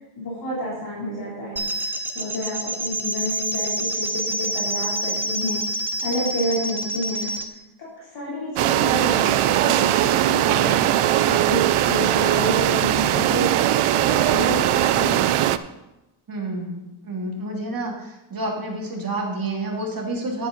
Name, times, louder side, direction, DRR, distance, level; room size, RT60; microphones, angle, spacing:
voice 1, 0.2-1.7 2.1-5.6 6.0-7.3 7.8-13.5 13.9-15.2, left 1 dB, 50° left, -6 dB, 3.5 m, -30 dB
sound 1, 1.6-7.5, right 1 dB, 5° right, 0.8 m, -27 dB
sound 2, 8.6-15.6, right 12 dB, 80° right, 0.6 m, -20 dB
voice 2, 16.3-17.9 18.3-20.5, right 2 dB, 45° right, -1 dB, 2.7 m, -29 dB
10.5 x 9.5 x 4.0 m, 0.95 s
cardioid pair, 110°, 50 cm